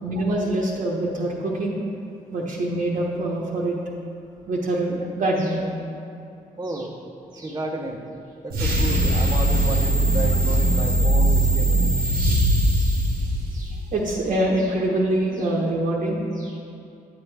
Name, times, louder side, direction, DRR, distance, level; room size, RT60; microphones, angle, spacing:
voice 1, 0.0-1.8 2.3-3.8 4.5-5.6 6.7-6.8 7.3-7.6 12.8-13.0 13.5-16.6, right 1 dB, 60° right, -4 dB, 1.2 m, -25 dB
voice 2, 6.6-6.9 7.4-8.0 8.4-11.8, right 2 dB, 25° right, 2 dB, 1.1 m, -32 dB
sound 1, 8.5-13.9, right 1 dB, 85° right, 1.4 m, -20 dB
9.0 x 8.2 x 3.4 m, 2.6 s
supercardioid pair, 60°, 15 cm